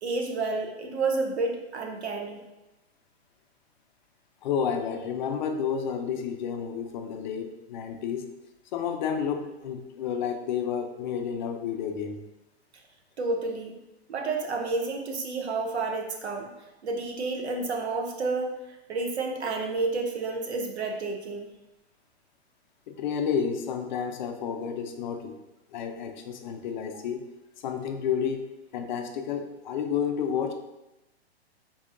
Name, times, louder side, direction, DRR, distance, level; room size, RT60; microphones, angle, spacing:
voice 1, 0.0-2.5 13.2-13.8 14.1-16.5 16.8-18.5 18.9-21.5, right 3 dB, 85° right, 3 dB, 0.8 m, -30 dB
voice 2, 4.4-8.3 8.7-12.2 22.9-25.4 25.7-27.3 27.6-28.5 28.7-30.5, left 7 dB, 45° left, 5 dB, 0.5 m, -30 dB
4.5 x 2.7 x 2.5 m, 0.95 s
hypercardioid pair, 125°, 32 cm